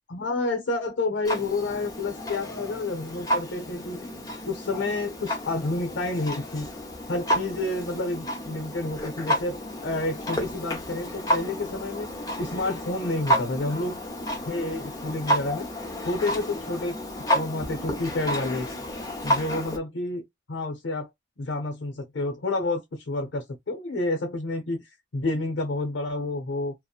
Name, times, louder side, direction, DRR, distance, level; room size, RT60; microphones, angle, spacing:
voice 1, 0.1-4.1 4.5-6.7 7.1-12.1 12.4-14.0 14.5-15.7 16.0-17.0 17.3-18.7 19.2-20.2 20.5-21.1 21.4-24.8 25.1-26.7, left 2 dB, 80° left, 0.6 m, -29 dB
Clock, 1.2-19.8, equal, 20° left, 0.6 m, -31 dB
2.8 x 2.0 x 2.3 m
head